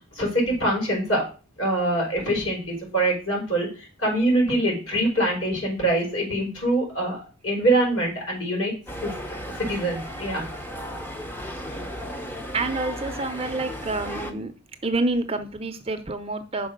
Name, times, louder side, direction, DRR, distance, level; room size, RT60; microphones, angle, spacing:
voice 1, 0.1-1.2 1.6-3.7 4.0-8.8 9.0-9.1 9.6-10.4, right 1 dB, 65° left, -2 dB, 4.7 m, -24 dB
sound 1, 8.9-14.3, equal, 10° left, 0.7 m, -35 dB
voice 2, 12.5-14.5 14.8-16.7, right 2 dB, 25° right, 8 dB, 0.6 m, -28 dB
6.1 x 4.7 x 6.5 m, 0.35 s
head